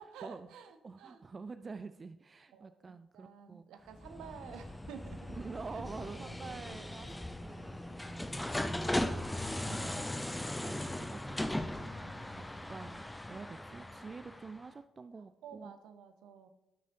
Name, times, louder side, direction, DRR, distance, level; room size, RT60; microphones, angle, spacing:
voice 1, 0.0-1.2 2.5-5.3 5.7-6.8 7.0-7.2 7.9-8.4 11.8-12.5 15.4-16.5, right 7 dB, 65° right, 9 dB, 0.6 m, -52 dB
voice 2, 0.8-3.9 5.3-8.2 8.7-10.1 10.5-11.9 12.2-15.7, right 4 dB, 35° right, 11 dB, 0.3 m, -48 dB
sound 1, 3.9-14.6, left 1 dB, 10° left, 0.6 m, -38 dB
12.5 x 6.2 x 2.8 m, 0.99 s
figure-of-eight pair, 40°, 0 cm